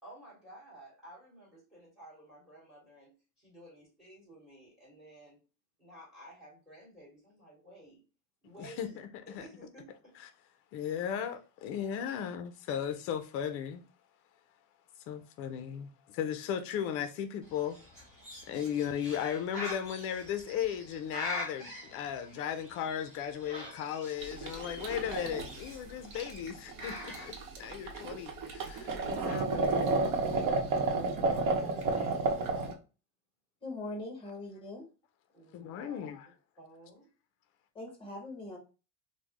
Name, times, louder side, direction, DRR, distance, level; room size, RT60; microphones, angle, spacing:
voice 1, 0.0-5.4 5.8-8.0 8.4-10.1 12.1-12.2 30.3-32.8 35.3-36.1 36.6-37.1, right 1 dB, ahead, 1.9 m, -52 dB
voice 2, 8.6-9.1 9.3-9.4 10.7-13.8 15.1-17.8 18.5-30.0 35.5-36.3, left 9 dB, 40° left, 0.4 m, -36 dB
Bird, 17.4-27.3, left 1 dB, 20° right, 1.7 m, -45 dB
sound 1, 24.2-32.7, right 3 dB, 85° right, 0.9 m, -32 dB
voice 3, 33.6-34.9 37.7-38.6, left 2 dB, 15° left, 0.9 m, -41 dB
3.8 x 2.1 x 3.1 m
cardioid pair, 170°, 36 cm